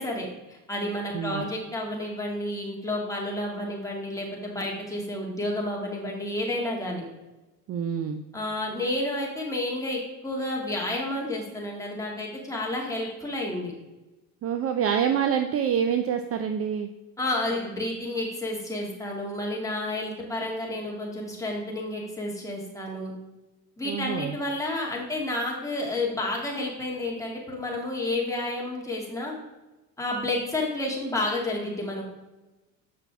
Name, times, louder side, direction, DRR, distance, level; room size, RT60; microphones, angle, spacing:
voice 1, 0.0-7.0 8.3-13.7 17.2-23.1 23.8-29.4 30.0-32.0, left 1 dB, 10° left, -2 dB, 2.1 m, -30 dB
voice 2, 1.1-1.5 7.7-8.2 14.4-16.9 23.8-24.3, right 8 dB, 35° right, 7 dB, 0.5 m, -26 dB
7.6 x 5.8 x 3.5 m, 1.1 s
supercardioid pair, 110°, 39 cm